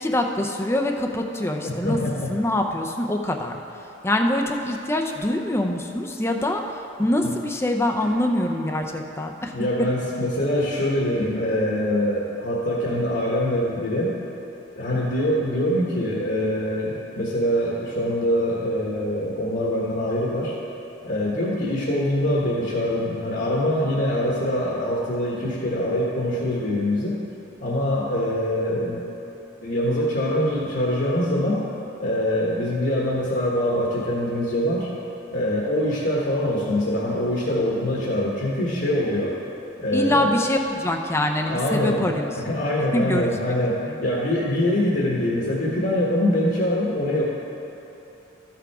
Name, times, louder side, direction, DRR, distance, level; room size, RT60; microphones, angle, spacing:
voice 1, 0.0-2.0 2.3-3.6 4.0-9.5 39.9-42.3 42.9-43.3 43.9-44.0, left 1 dB, 15° left, 3 dB, 0.5 m, -24 dB
voice 2, 1.6-2.3 7.2-7.3 8.0-8.1 9.5-14.2 14.7-20.5 21.0-27.2 27.6-29.0 29.6-31.6 32.0-34.9 35.3-39.4 39.8-40.3 41.5-42.1 42.4-47.2, left 1 dB, 60° left, -5 dB, 1.4 m, -24 dB
14.0 x 6.0 x 4.8 m, 2.9 s
head